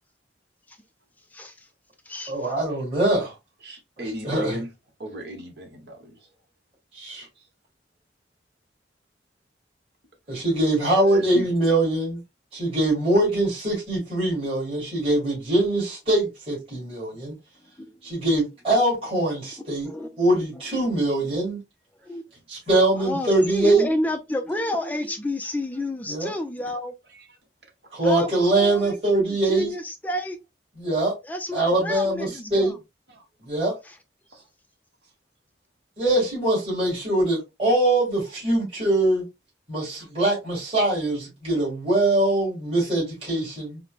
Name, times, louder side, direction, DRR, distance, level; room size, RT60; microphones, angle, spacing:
voice 1, 1.3-1.7 2.1-2.3 11.0-11.1 17.8-18.0 19.8-20.1 22.0-22.3 23.0-26.9 28.0-29.0 29.4-30.4 31.3-32.7, left 1 dB, 10° left, 0.4 m, -30 dB
voice 2, 2.3-3.3 4.0-4.6 6.9-7.3 10.3-12.2 12.5-17.4 18.0-19.9 20.2-21.6 22.5-23.9 26.1-26.3 27.9-29.7 30.8-31.1 31.5-32.8 33.4-33.7 36.0-39.2 39.7-43.8, right 1 dB, 30° right, 2.0 m, -23 dB
voice 3, 3.6-4.7 5.0-6.3 7.4-7.5 11.1-11.4 25.4-25.5 27.1-27.4 33.1-33.2 34.3-34.4 43.5-43.6, equal, 60° right, 1.1 m, -36 dB
4.3 x 2.1 x 2.4 m
head